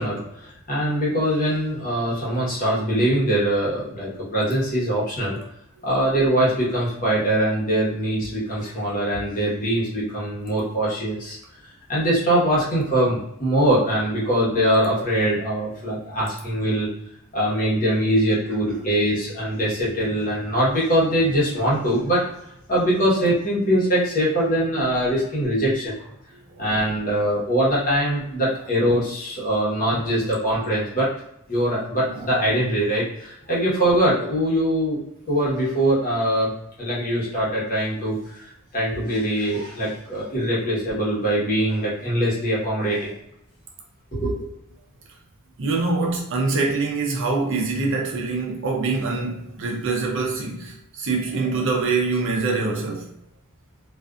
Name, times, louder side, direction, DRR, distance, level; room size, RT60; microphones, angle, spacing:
voice 1, 0.0-5.4 5.8-11.4 11.9-16.9 17.3-22.2 22.7-25.9 26.6-31.1 31.5-35.0 35.3-36.5 36.8-43.1 44.1-44.5, right 1 dB, 40° left, 1.0 m, -22 dB
voice 2, 45.6-53.1, right 3 dB, 60° right, 0.6 m, -24 dB
2.4 x 2.4 x 2.3 m
head